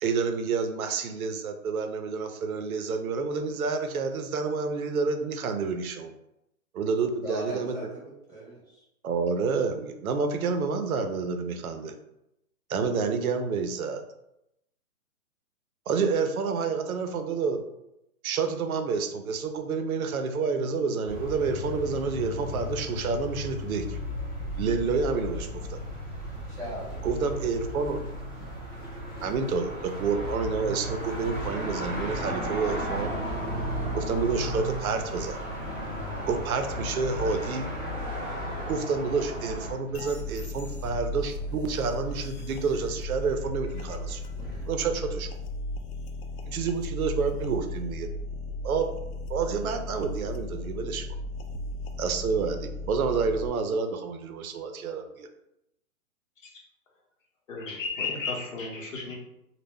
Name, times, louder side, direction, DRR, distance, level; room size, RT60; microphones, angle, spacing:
voice 1, 0.0-6.1 6.7-7.8 9.0-12.0 12.7-14.0 15.9-17.6 18.2-24.0 24.6-25.8 27.0-28.1 29.2-33.1 33.9-35.4 36.3-37.7 38.7-44.2 44.7-45.3 46.5-48.1 48.6-48.9 49.3-51.1 52.0-55.3, right 5 dB, 75° right, 7 dB, 0.5 m, -29 dB
voice 2, 7.2-8.8 26.5-27.2, equal, 20° left, -17 dB, 0.5 m, -39 dB
sound 1, 21.0-39.7, equal, 15° right, 0.9 m, -35 dB
sound 2, 26.2-44.7, right 1 dB, 35° left, 0.8 m, -47 dB
sound 3, 39.9-53.5, left 1 dB, 90° left, 0.6 m, -36 dB
voice 3, 57.5-59.1, left 4 dB, 60° left, -1 dB, 0.9 m, -33 dB
2.2 x 2.1 x 3.4 m, 0.86 s
hypercardioid pair, 170°, 43 cm